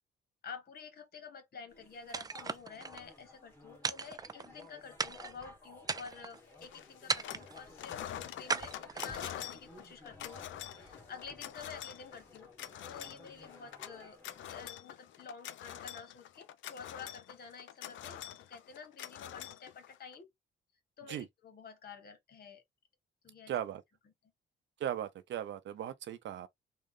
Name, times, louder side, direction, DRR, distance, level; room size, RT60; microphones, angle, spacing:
voice 1, 0.4-10.5 10.7-14.2 14.5-20.3 21.0-22.6 23.2-23.5, left 5 dB, 50° left, 1.3 m, -50 dB
sound 1, 1.7-14.7, left 2 dB, 10° left, 1.9 m, -56 dB
sound 2, 2.1-3.0 3.8-4.6 5.0-5.4 5.8-6.4 7.1-7.6 8.5-9.4, right 4 dB, 20° right, 0.3 m, -37 dB
sound 3, 6.6-7.5 7.8-20.2, left 11 dB, 70° left, 0.5 m, -46 dB
voice 2, 23.5-23.8 24.8-26.5, right 10 dB, 65° right, 0.7 m, -37 dB
3.7 x 2.2 x 3.7 m
cardioid pair, 90°, 20 cm